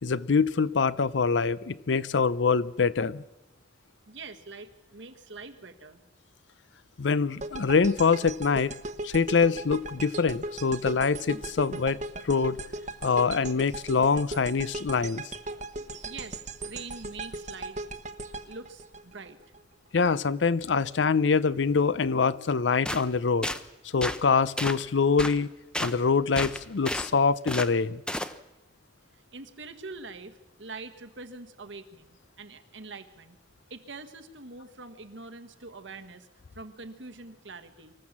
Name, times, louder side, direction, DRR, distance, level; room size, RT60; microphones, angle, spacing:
voice 1, 0.0-3.2 7.0-8.7 9.0-12.0 12.2-12.6 13.0-15.2 19.9-23.5 23.9-25.5 25.8-28.0, left 5 dB, 75° left, 0.6 m, -24 dB
voice 2, 4.1-6.0 16.0-17.8 18.4-19.4 29.1-33.4 33.7-36.3 36.5-37.9, right 3 dB, 85° right, 1.6 m, -44 dB
sound 1, 7.4-19.6, right 2 dB, 40° right, 1.0 m, -38 dB
sound 2, 22.8-23.0 23.4-23.6 24.0-24.2 24.6-24.8 25.2-25.4 25.7-25.9 26.4-27.1 27.5-27.7 28.1-28.3, left 1 dB, 5° left, 0.7 m, -31 dB
25.0 x 14.5 x 7.4 m
head